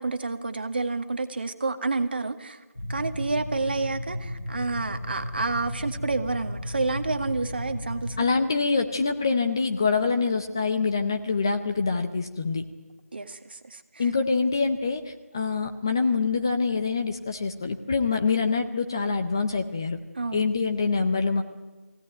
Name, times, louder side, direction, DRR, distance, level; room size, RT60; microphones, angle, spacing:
voice 1, 0.0-2.6 2.9-8.3 13.1-14.1 20.1-20.4, right 3 dB, 40° right, 8 dB, 1.7 m, -29 dB
sound 1, 2.8-8.2, left 1 dB, 70° left, 2.6 m, -34 dB
voice 2, 8.2-12.6 14.0-20.0 20.3-21.4, left 4 dB, 15° left, 6 dB, 0.6 m, -25 dB
21.5 x 17.0 x 9.5 m, 1.2 s
figure-of-eight pair, 170°, 8 cm